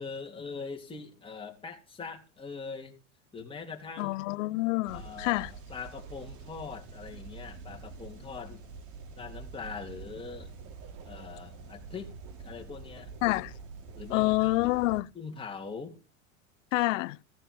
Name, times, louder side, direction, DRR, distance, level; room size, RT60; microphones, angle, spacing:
voice 1, 0.0-2.9 3.3-4.1 4.9-8.6 9.2-10.6 11.0-12.1 12.4-13.1 14.0-14.5 15.1-16.0, left 5 dB, 15° left, 3.4 m, -42 dB
voice 2, 4.0-5.5 13.2-13.5 14.1-15.1 16.7-17.2, left 20 dB, 75° left, 0.6 m, -27 dB
sound 1, 4.9-15.0, right 4 dB, 50° right, 3.1 m, -46 dB
16.0 x 6.6 x 7.2 m
supercardioid pair, 115°, 38 cm